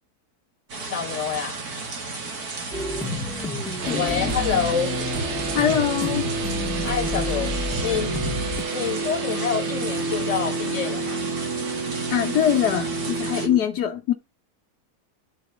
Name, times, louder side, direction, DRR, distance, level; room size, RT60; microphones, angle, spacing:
sound 1, 0.7-13.5, right 3 dB, 70° right, 2.5 m, -34 dB
voice 1, 0.8-1.6 3.9-5.0 6.8-8.1 8.7-11.2, left 8 dB, 50° left, 2.1 m, -27 dB
sound 2, 2.7-8.6, left 2 dB, ahead, 2.2 m, -30 dB
sound 3, 3.8-13.6, right 3 dB, 50° right, 1.1 m, -30 dB
voice 2, 5.5-6.3 12.1-14.1, left 10 dB, 85° left, 1.6 m, -23 dB
11.5 x 4.0 x 6.1 m
omnidirectional pair, 1.7 m